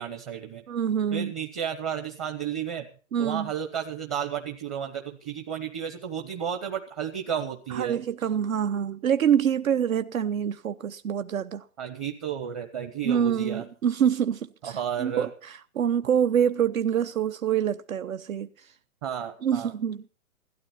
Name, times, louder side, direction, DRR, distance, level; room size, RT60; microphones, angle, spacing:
voice 1, 0.0-0.6 1.1-2.9 3.2-8.0 11.8-13.6 14.6-15.3 19.0-19.7, right 8 dB, 25° right, 1.0 m, -32 dB
voice 2, 0.7-1.3 3.1-3.5 7.7-11.6 13.0-18.7 19.4-20.1, right 8 dB, 70° right, 0.9 m, -26 dB
16.5 x 12.5 x 5.6 m
hypercardioid pair, 160°, 43 cm